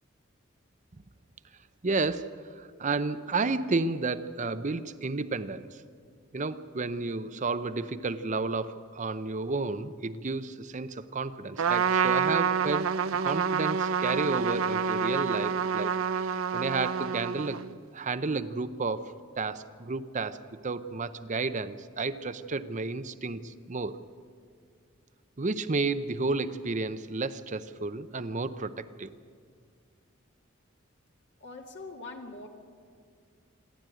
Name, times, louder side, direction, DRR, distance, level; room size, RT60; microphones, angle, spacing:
voice 1, 1.8-5.8 6.3-12.9 13.2-15.9 16.2-17.6 17.9-24.0 25.4-29.1, right 3 dB, 35° right, 12 dB, 0.7 m, -32 dB
Trumpet, 11.6-17.7, right 6 dB, 85° right, 0.6 m, -28 dB
voice 2, 31.4-32.5, left 3 dB, 60° left, 1 dB, 2.2 m, -42 dB
27.0 x 11.5 x 9.1 m, 2.1 s
head